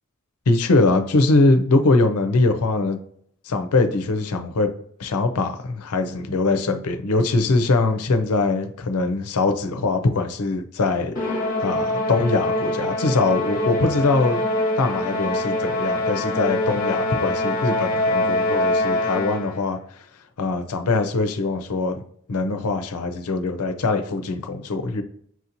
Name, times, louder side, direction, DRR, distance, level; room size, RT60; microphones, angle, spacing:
voice 1, 0.5-3.0 3.4-4.7 5.0-11.2 11.6-14.4 14.8-19.8 20.4-22.0 22.3-25.0, left 3 dB, 90° left, 7 dB, 0.6 m, -22 dB
Musical instrument, 11.1-19.6, left 1 dB, 35° left, 0.9 m, -24 dB
6.0 x 2.9 x 2.6 m, 0.64 s
head